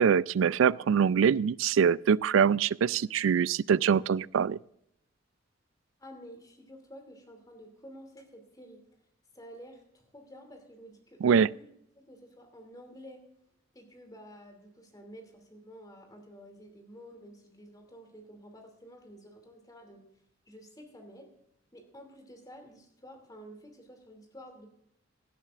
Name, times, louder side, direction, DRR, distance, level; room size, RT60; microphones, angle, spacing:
voice 1, 0.0-4.6 11.2-11.5, right 7 dB, 80° right, 0.3 m, -24 dB
voice 2, 6.0-8.8 9.3-11.7 11.9-13.2 13.7-20.0 20.5-21.3 21.7-24.7, equal, 20° left, 2.7 m, -50 dB
17.5 x 12.0 x 2.5 m
head